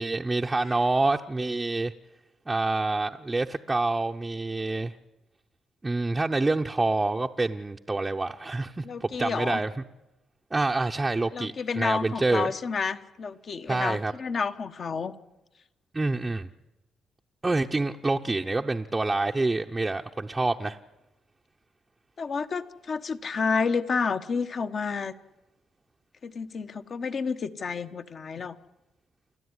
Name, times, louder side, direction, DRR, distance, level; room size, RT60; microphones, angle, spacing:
voice 1, 0.0-1.9 2.5-4.9 5.8-9.7 10.5-12.5 13.7-14.1 15.9-16.5 17.4-20.8, right 2 dB, 20° right, 0.7 m, -27 dB
voice 2, 8.8-9.6 11.3-15.1 22.2-25.1 26.2-28.6, left 5 dB, 50° left, 1.2 m, -30 dB
29.0 x 12.5 x 9.7 m
cardioid pair, 90°, 0 cm